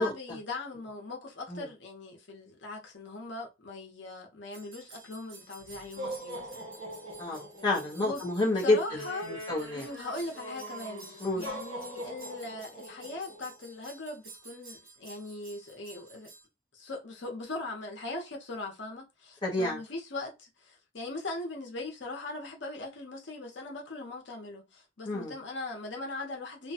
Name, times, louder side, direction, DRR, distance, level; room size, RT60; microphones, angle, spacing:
voice 1, 0.0-6.6 8.0-8.2 8.5-9.4 9.7-16.3 16.7-26.7, left 2 dB, 70° left, 0.8 m, -40 dB
sound 1, 4.5-16.4, right 1 dB, 85° right, 1.2 m, -43 dB
voice 2, 7.2-8.8 9.2-9.8 11.2-11.4 19.4-19.8 25.1-25.3, left 2 dB, 25° left, 0.7 m, -28 dB
2.5 x 2.2 x 2.7 m
head